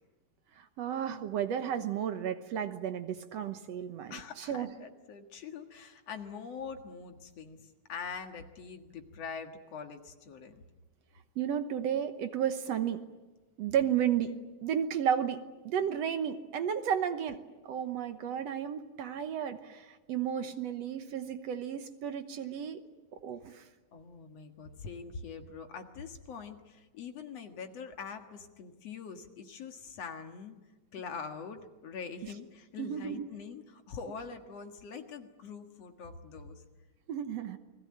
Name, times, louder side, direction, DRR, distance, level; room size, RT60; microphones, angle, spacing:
voice 1, 0.6-4.7 11.4-13.0 13.6-14.3 14.6-22.8 23.2-23.7 32.8-33.3 37.1-37.6, right 9 dB, 65° right, 9 dB, 2.1 m, -33 dB
voice 2, 4.1-10.6 23.9-30.6 30.9-36.6, left 5 dB, 60° left, 6 dB, 2.7 m, -44 dB
29.0 x 21.0 x 8.7 m, 1.2 s
omnidirectional pair, 3.3 m